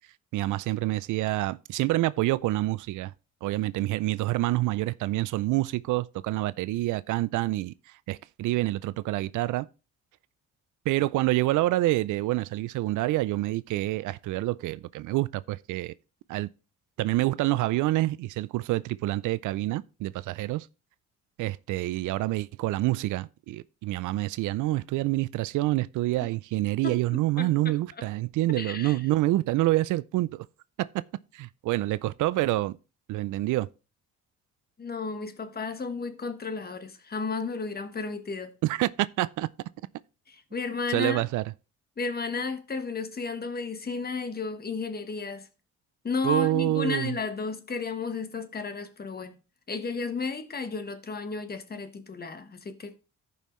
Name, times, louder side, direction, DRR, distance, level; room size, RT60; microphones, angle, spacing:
voice 1, 0.3-3.1 3.4-7.7 8.1-9.7 10.9-15.9 16.3-16.5 17.0-20.7 21.4-30.5 30.8-30.9 31.3-32.8 33.1-33.7 38.6-39.5 40.9-41.4 46.2-47.1, right 17 dB, 80° right, 0.5 m, -27 dB
voice 2, 26.8-28.1 28.5-29.0 34.8-38.5 40.3-41.2 42.0-45.5 46.0-49.4 49.7-52.9, left 4 dB, 30° left, 1.3 m, -33 dB
14.0 x 5.5 x 3.1 m
cardioid pair, 90°, 30 cm